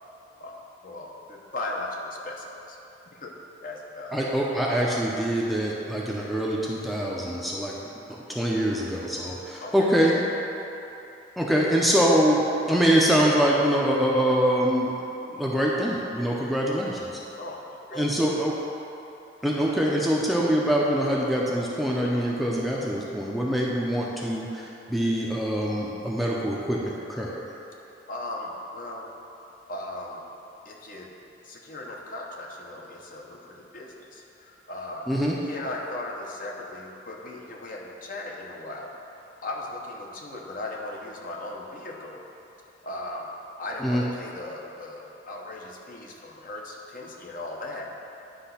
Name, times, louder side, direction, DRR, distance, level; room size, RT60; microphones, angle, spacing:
voice 1, 0.4-2.8 3.1-3.3 3.6-4.3 9.6-9.9 17.4-18.3 28.1-29.1 29.7-30.2 30.6-31.1 31.4-35.1 35.4-38.9 39.4-42.2 42.8-43.3 43.6-47.9, left 2 dB, 45° left, -1 dB, 0.8 m, -37 dB
voice 2, 4.1-7.8 8.1-10.2 11.4-14.9 15.3-17.1 17.9-18.5 19.4-27.3 35.1-35.3 43.8-44.0, equal, ahead, -4 dB, 0.5 m, -24 dB
10.0 x 3.3 x 5.7 m, 2.9 s
head